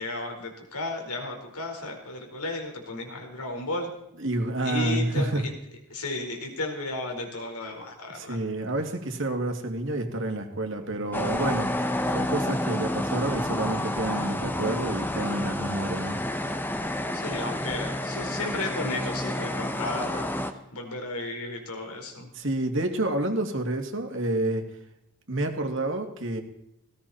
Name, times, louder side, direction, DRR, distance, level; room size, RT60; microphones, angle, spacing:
voice 1, 0.0-3.9 4.6-5.5 5.9-8.4 17.1-20.3 20.7-22.3, left 2 dB, 85° left, 2 dB, 4.7 m, -34 dB
voice 2, 4.2-5.4 8.1-11.7 12.1-16.2 22.3-24.6 25.3-26.4, right 1 dB, 55° right, 4 dB, 2.6 m, -29 dB
sound 1, 11.1-20.5, left 1 dB, 10° left, 0.9 m, -29 dB
18.5 x 17.0 x 4.4 m, 0.83 s
head